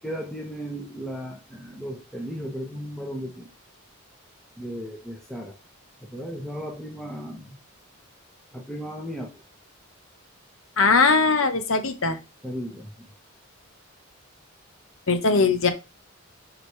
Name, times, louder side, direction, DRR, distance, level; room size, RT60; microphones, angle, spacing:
voice 1, 0.0-3.5 4.6-5.6 6.0-7.6 8.5-9.4 12.4-13.1, equal, ahead, 0 dB, 0.8 m, -35 dB
voice 2, 10.8-12.2 15.1-15.7, left 4 dB, 70° left, 8 dB, 1.0 m, -20 dB
6.1 x 5.0 x 3.2 m, 0.27 s
head